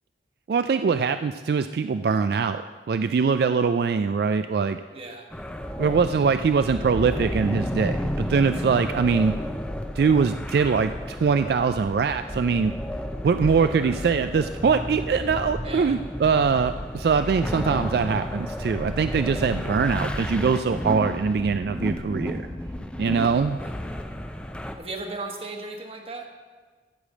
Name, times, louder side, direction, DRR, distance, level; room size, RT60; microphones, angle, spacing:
voice 1, 0.5-4.8 5.8-9.3 10.0-12.7 13.2-22.4 23.0-23.6, right 5 dB, 60° right, 10 dB, 0.3 m, -23 dB
voice 2, 4.9-5.3 15.6-16.0 23.3-23.7 24.8-26.3, right 2 dB, 30° right, 3 dB, 1.2 m, -36 dB
sound 1, 5.3-24.8, equal, 5° left, 0.5 m, -32 dB
13.5 x 5.0 x 7.5 m, 1.5 s
head